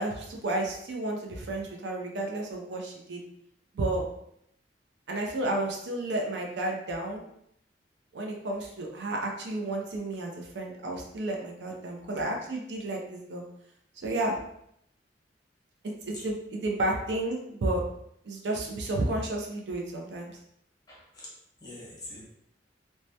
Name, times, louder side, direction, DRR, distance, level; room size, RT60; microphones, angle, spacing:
voice 1, 0.0-3.2 3.7-4.0 5.1-7.2 8.1-13.4 14.0-14.4 16.1-17.8 18.2-20.4, right 1 dB, 70° right, 0 dB, 0.4 m, -32 dB
voice 2, 20.9-22.3, left 1 dB, 20° left, -5 dB, 0.9 m, -45 dB
2.1 x 2.1 x 2.7 m, 0.74 s
head